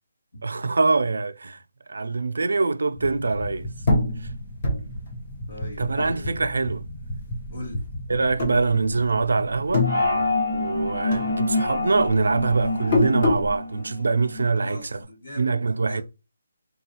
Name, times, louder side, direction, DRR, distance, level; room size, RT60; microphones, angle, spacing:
voice 1, 0.4-1.6 1.9-3.7 5.8-6.8 8.1-9.9 10.5-15.0 15.4-16.0, right 3 dB, 80° right, 0.3 m, -24 dB
sound 1, 2.9-10.4, equal, 5° left, 0.5 m, -36 dB
sound 2, 3.9-6.7 7.1-7.9 8.3-9.2 9.5-10.8 11.1-13.6, left 3 dB, 25° left, 0.9 m, -26 dB
voice 2, 5.5-6.5 7.5-7.9 14.5-15.6 15.8-16.0, left 1 dB, 50° left, 2.1 m, -40 dB
sound 3, 9.8-14.4, left 2 dB, 75° left, 1.4 m, -27 dB
4.0 x 2.3 x 2.8 m
hypercardioid pair, 175°, 0 cm